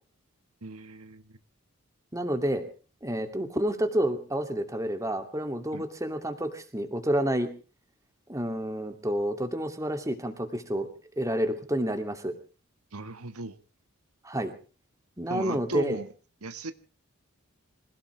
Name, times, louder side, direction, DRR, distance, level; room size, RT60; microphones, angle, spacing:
voice 1, 0.6-1.3 5.7-5.9 12.9-13.5 15.3-16.1 16.4-16.7, right 2 dB, 85° right, 10 dB, 1.5 m, -37 dB
voice 2, 2.1-2.6 3.0-7.5 8.3-10.9 11.2-12.4 14.2-14.5 15.2-16.0, right 1 dB, 15° right, 7 dB, 2.5 m, -29 dB
26.0 x 16.5 x 3.3 m, 0.38 s
head